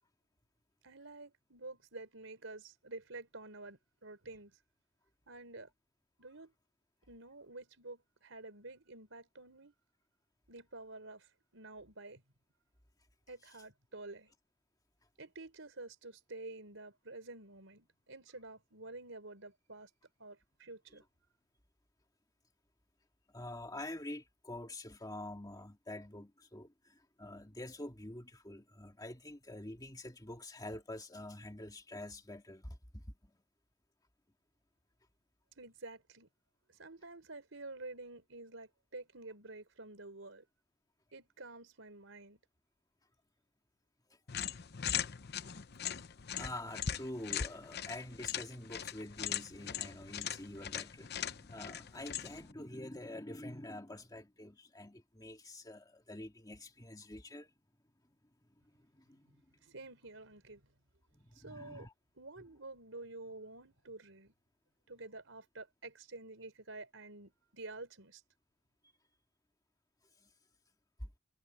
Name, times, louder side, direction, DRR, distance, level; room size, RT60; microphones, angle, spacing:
voice 1, 0.8-4.6 5.3-5.7 6.2-6.5 7.1-9.7 10.5-12.2 13.3-14.3 15.2-19.9 20.2-21.0 35.6-36.3 36.7-40.5 41.1-42.4 59.3-60.6 61.3-61.9 62.2-64.3 64.9-68.2, right 2 dB, 85° right, 4.1 m, -50 dB
voice 2, 23.3-33.3 46.3-57.5 58.8-59.4 61.1-61.9 70.2-70.3 71.0-71.1, left 1 dB, 20° left, 2.0 m, -47 dB
sound 1, 44.3-52.5, left 9 dB, 55° left, 0.8 m, -40 dB
head